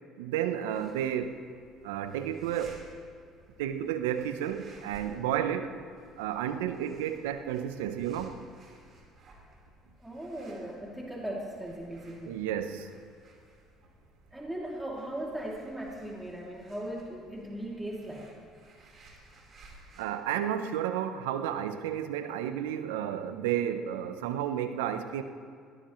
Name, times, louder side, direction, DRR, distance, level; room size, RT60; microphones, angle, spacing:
voice 1, 0.2-1.4 1.8-2.8 3.6-5.7 6.2-8.4 12.2-12.9 20.0-25.2, right 10 dB, 80° right, 10 dB, 0.8 m, -32 dB
sound 1, 0.7-20.0, right 2 dB, 45° right, 4.3 m, -57 dB
voice 2, 10.0-12.4 14.3-18.3, right 1 dB, 5° right, -3 dB, 2.8 m, -38 dB
21.5 x 16.5 x 3.2 m, 2.2 s
hypercardioid pair, 65°, 0 cm